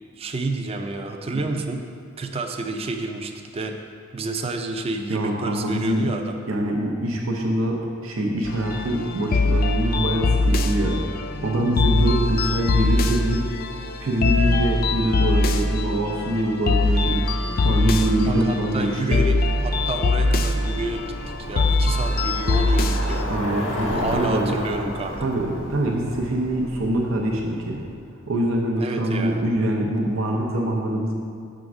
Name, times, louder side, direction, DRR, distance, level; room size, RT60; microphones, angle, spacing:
voice 1, 0.2-1.8 2.2-3.8 4.1-6.4 18.2-21.1 21.5-23.5 24.0-25.2 28.8-29.5, right 2 dB, 30° right, 4 dB, 0.4 m, -29 dB
voice 2, 5.1-6.1 6.5-13.5 14.0-17.3 17.6-19.2 23.3-24.6 25.2-27.8 28.3-31.1, right 1 dB, 90° right, -1 dB, 0.7 m, -24 dB
sound 1, 8.4-23.2, left 2 dB, 45° left, 0.4 m, -22 dB
Bicycle, 17.2-28.1, left 1 dB, 90° left, 1.3 m, -34 dB
5.9 x 3.8 x 6.0 m, 2.2 s
head